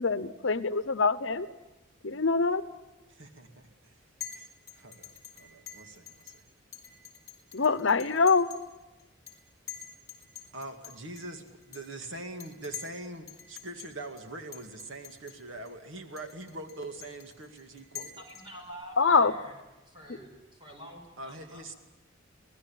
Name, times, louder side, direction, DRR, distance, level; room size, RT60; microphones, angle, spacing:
voice 1, 0.0-1.5 2.0-2.6 7.5-8.5 19.0-19.3, left 4 dB, 70° left, 13 dB, 0.9 m, -24 dB
voice 2, 3.1-3.9 4.3-4.5 4.8-6.4 10.5-18.2 21.2-21.7, right 2 dB, 75° right, 5 dB, 2.3 m, -43 dB
Chink clink, 4.2-4.4 4.7-6.4 6.7-8.7 9.0-9.4 9.7-13.0 13.3-13.9 14.2-14.3 14.5-15.4 15.7-15.8 16.2-18.7, left 10 dB, 15° left, 4.8 m, -45 dB
voice 3, 18.2-19.6 19.8-21.6, equal, 25° right, 2 dB, 5.3 m, -47 dB
25.0 x 18.5 x 8.7 m, 1.1 s
head